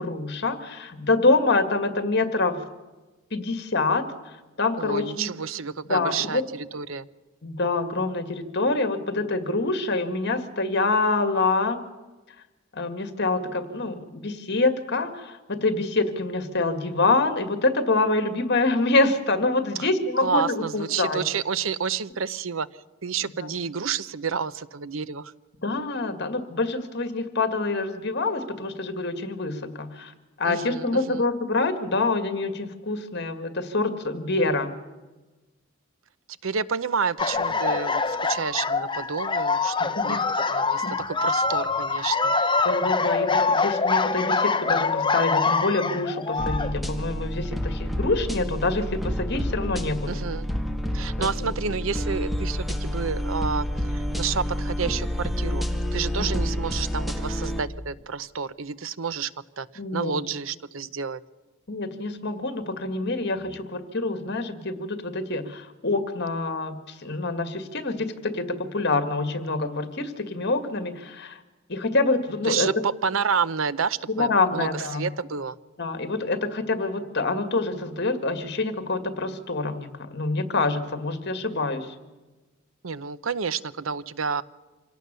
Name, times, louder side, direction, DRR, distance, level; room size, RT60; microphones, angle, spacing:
voice 1, 0.0-2.6 3.3-4.0 4.6-5.3 5.9-6.4 7.4-11.8 12.7-21.2 23.4-23.5 25.6-30.1 30.4-34.7 39.9-40.2 40.8-40.9 42.6-50.2 51.2-51.5 56.2-56.5 59.8-60.2 61.7-71.4 71.7-72.7 74.2-75.1 75.8-81.9, left 3 dB, 55° left, 8 dB, 2.0 m, -26 dB
voice 2, 4.8-7.1 19.8-19.9 20.2-25.3 30.4-31.2 36.4-40.2 40.5-42.3 50.1-50.5 50.9-55.6 55.9-59.3 59.6-59.7 59.9-61.2 72.5-75.6 82.8-84.4, right 6 dB, 75° right, 16 dB, 0.7 m, -30 dB
sound 1, 37.2-46.7, left 4 dB, 25° left, 1.0 m, -24 dB
sound 2, 46.4-57.6, equal, ahead, 1.6 m, -29 dB
26.0 x 17.5 x 6.8 m, 1.2 s
head